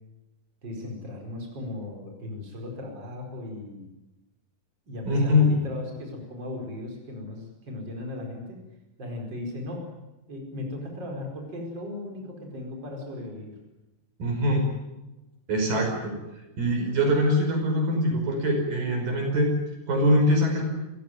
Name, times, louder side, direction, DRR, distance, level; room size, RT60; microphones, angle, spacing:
voice 1, 0.6-3.9 4.9-8.6 9.0-9.9 10.3-13.6, left 2 dB, 30° right, 2 dB, 5.4 m, -37 dB
voice 2, 5.1-5.6 14.2-14.6 15.5-16.1 16.6-19.5 19.9-20.6, left 1 dB, 75° right, 3 dB, 7.0 m, -23 dB
28.5 x 15.5 x 9.2 m, 0.99 s
omnidirectional pair, 4.0 m